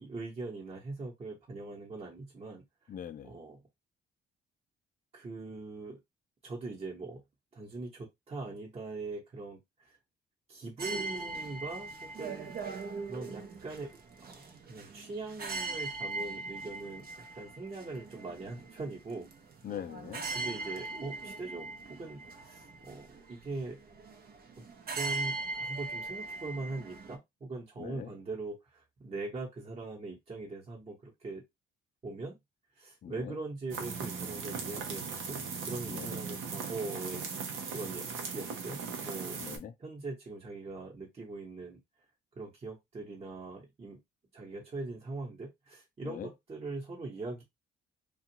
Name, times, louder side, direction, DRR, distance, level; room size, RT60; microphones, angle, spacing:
voice 1, 0.0-2.6 3.2-3.6 5.1-6.0 6.4-7.2 7.5-10.0 10.5-12.5 13.1-19.3 20.3-23.8 24.9-31.4 32.0-32.4 32.8-39.4 39.8-41.8 42.4-44.0 44.3-47.4, right 3 dB, 30° right, 1.1 m, -41 dB
voice 2, 2.9-3.4 19.6-20.3 27.8-28.1 33.0-33.4 35.9-36.2 39.4-39.7 46.0-46.3, left 9 dB, 45° left, 0.5 m, -42 dB
sound 1, 10.8-27.2, right 3 dB, 50° right, 0.7 m, -40 dB
sound 2, 33.7-39.6, right 5 dB, 85° right, 0.8 m, -38 dB
2.5 x 2.4 x 2.8 m
cardioid pair, 90°, 20 cm